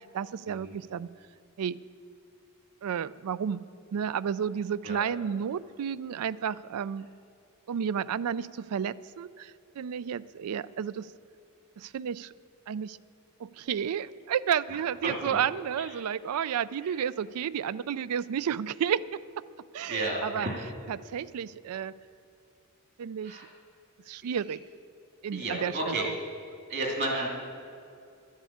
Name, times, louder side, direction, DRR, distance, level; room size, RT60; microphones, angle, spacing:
voice 1, 0.1-1.1 1.6-1.8 2.8-3.6 3.9-7.1 7.7-11.1 11.8-12.3 12.7-13.0 13.4-19.0 19.7-20.5 20.9-21.9 23.0-23.4 24.1-24.6 25.2-26.1, right 8 dB, 80° right, 18 dB, 0.4 m, -31 dB
voice 2, 15.0-15.4 15.8-15.9 16.8-17.0 19.9-20.6 23.2-23.4 24.2-24.3 25.3-26.1 26.7-27.3, right 2 dB, 50° right, -1 dB, 2.5 m, -32 dB
12.0 x 7.4 x 8.5 m, 2.5 s
head